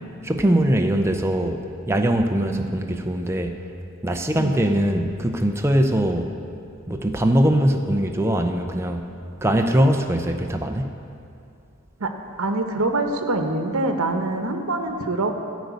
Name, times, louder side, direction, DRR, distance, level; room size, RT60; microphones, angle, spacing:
voice 1, 0.2-1.6 1.9-3.6 4.0-6.3 6.9-9.0 9.4-10.9, right 1 dB, 10° right, 4 dB, 0.6 m, -21 dB
voice 2, 12.3-15.3, right 2 dB, 85° right, 5 dB, 0.9 m, -24 dB
13.5 x 5.2 x 8.2 m, 2.5 s
head